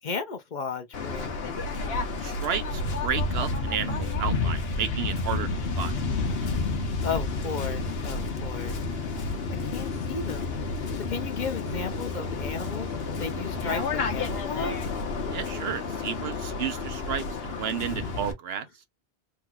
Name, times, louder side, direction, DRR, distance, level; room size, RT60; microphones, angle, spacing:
voice 1, 0.0-1.5 7.0-8.8 9.6-10.6 11.0-12.9 13.2-14.7, left 5 dB, 50° left, 0.7 m, -34 dB
Waves surf, 0.9-18.3, left 3 dB, 75° left, 1.1 m, -30 dB
voice 2, 2.2-5.5 5.8-5.9 15.3-18.7, right 8 dB, 75° right, 1.0 m, -32 dB
3.6 x 3.0 x 2.3 m
omnidirectional pair, 1.0 m